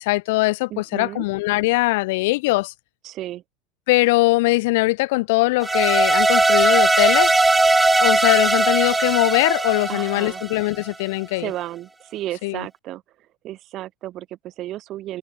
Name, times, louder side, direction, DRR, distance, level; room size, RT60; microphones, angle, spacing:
voice 1, 0.0-2.7 3.9-7.3 8.0-11.5 12.4-12.7, left 22 dB, 70° left, 0.3 m, -21 dB
voice 2, 0.7-1.2 3.0-3.4 9.9-10.4 11.4-13.0 13.4-15.2, right 14 dB, 45° right, 1.4 m, -33 dB
sound 1, 5.6-10.8, right 2 dB, 10° right, 0.5 m, -19 dB
supercardioid pair, 105°, 0 cm